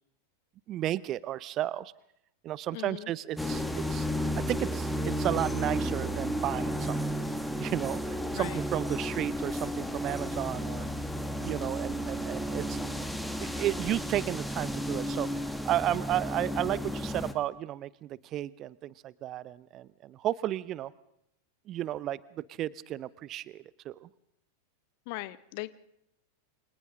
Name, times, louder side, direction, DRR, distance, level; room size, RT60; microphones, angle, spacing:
voice 1, 0.7-1.9 2.4-4.1 4.4-7.0 7.6-10.9 11.4-13.1 13.4-20.9 21.7-24.1, right 13 dB, 35° right, 0.7 m, -33 dB
voice 2, 2.7-3.1 8.3-8.6 25.1-25.7, left 20 dB, 45° left, 1.0 m, -39 dB
sound 1, 3.4-17.3, equal, 5° left, 1.7 m, -33 dB
29.0 x 25.5 x 3.8 m
figure-of-eight pair, 90°, 0 cm